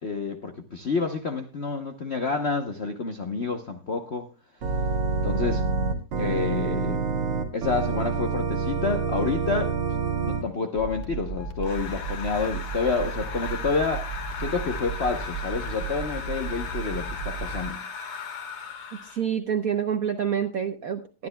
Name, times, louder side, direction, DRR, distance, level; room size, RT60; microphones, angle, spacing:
voice 1, 0.0-4.3 5.2-5.7 6.2-7.0 7.5-14.1 14.4-17.8, left 4 dB, 55° left, 0.7 m, -29 dB
Organ, 4.6-10.4, right 4 dB, 90° right, 2.8 m, -27 dB
sound 1, 10.7-17.6, right 6 dB, 30° left, 1.8 m, -35 dB
sound 2, 11.6-19.3, left 5 dB, 85° left, 2.6 m, -37 dB
voice 2, 19.0-21.3, right 8 dB, 60° right, 0.9 m, -27 dB
22.0 x 10.5 x 2.2 m
omnidirectional pair, 2.4 m